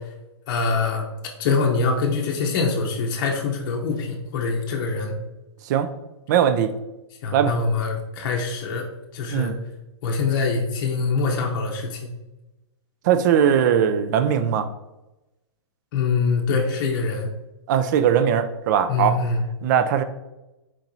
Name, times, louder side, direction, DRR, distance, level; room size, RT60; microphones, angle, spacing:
voice 1, 0.5-1.1 1.4-5.1 7.2-8.9 9.1-9.5 10.0-12.1 15.9-17.3 18.9-19.4, left 4 dB, 45° left, 0 dB, 0.7 m, -24 dB
voice 2, 6.3-6.7 7.3-7.5 9.3-9.5 13.0-14.7 17.7-19.2 19.6-20.0, right 8 dB, 40° right, 10 dB, 0.4 m, -20 dB
4.5 x 4.3 x 2.6 m, 1.0 s
hypercardioid pair, 145°, 15 cm